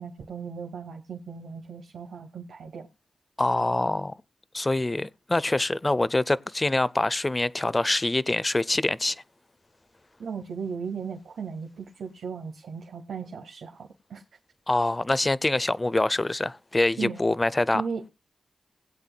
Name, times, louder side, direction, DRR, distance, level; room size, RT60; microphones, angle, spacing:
voice 1, 0.0-2.9 10.2-14.2 17.0-17.2 17.7-18.1, right 6 dB, 85° right, 1.6 m, -36 dB
voice 2, 3.4-4.1 4.5-9.2 14.7-17.8, left 2 dB, 25° left, 0.6 m, -25 dB
20.0 x 8.2 x 2.3 m
cardioid pair, 45°, 0 cm